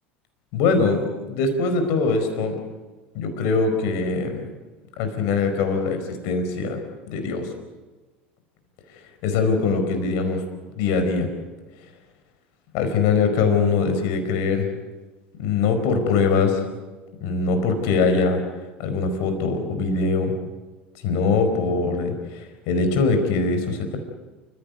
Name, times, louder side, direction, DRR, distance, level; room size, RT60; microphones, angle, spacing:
voice 1, 0.5-2.6 3.1-4.4 5.0-6.8 7.1-7.5 8.9-10.4 10.7-11.3 12.7-14.7 15.4-16.6 17.2-18.4 18.8-20.3 21.0-24.0, left 4 dB, 60° left, 7 dB, 4.8 m, -22 dB
29.0 x 16.0 x 8.1 m, 1.2 s
hypercardioid pair, 80°, 6 cm